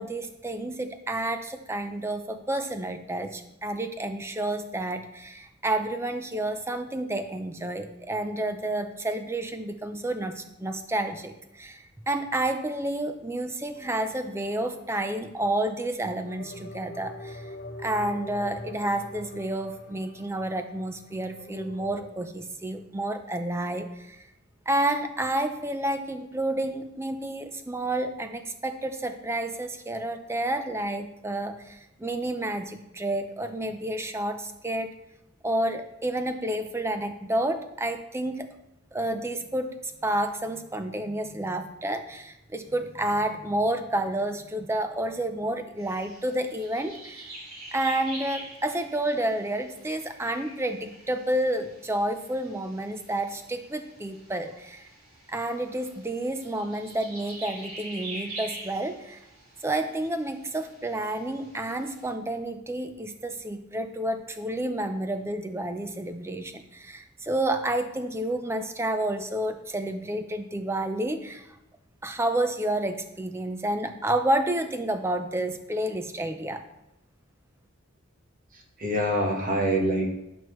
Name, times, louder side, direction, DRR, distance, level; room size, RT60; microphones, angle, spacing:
voice 1, 0.0-17.5 17.8-24.2 24.7-34.9 35.4-38.5 38.9-47.3 47.7-54.9 55.3-59.2 59.6-71.5 72.0-76.6, right 1 dB, 10° right, 8 dB, 0.5 m, -30 dB
sound 1, 13.7-15.4 16.2-22.1, left 1 dB, 45° left, 0.8 m, -44 dB
sound 2, 45.8-62.1, right 2 dB, 80° right, 2.9 m, -45 dB
voice 2, 78.5-80.1, right 1 dB, 40° right, 2 dB, 1.2 m, -26 dB
11.0 x 6.1 x 3.1 m, 0.88 s
head